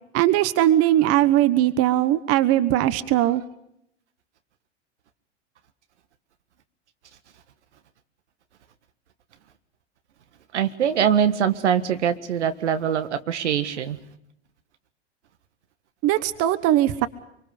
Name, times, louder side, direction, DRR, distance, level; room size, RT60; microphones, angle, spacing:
voice 1, 0.1-3.4 16.0-17.1, right 13 dB, 40° right, 15 dB, 1.3 m, -20 dB
voice 2, 10.5-14.0, right 8 dB, 75° right, 11 dB, 1.7 m, -23 dB
26.0 x 24.5 x 5.2 m, 0.77 s
figure-of-eight pair, 90°, 35 cm